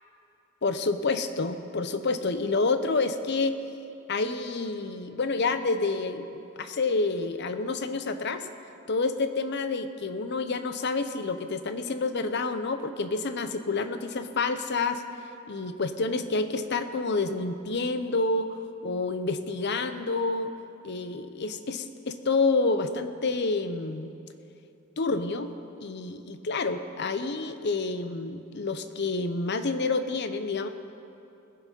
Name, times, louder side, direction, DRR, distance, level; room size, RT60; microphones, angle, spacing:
voice 1, 0.6-3.5 4.1-8.5 8.9-15.0 15.5-18.6 18.8-20.5 20.8-24.1 25.0-25.5 25.8-30.7, left 3 dB, 55° left, 10 dB, 0.7 m, -28 dB
20.0 x 7.5 x 5.2 m, 2.7 s
head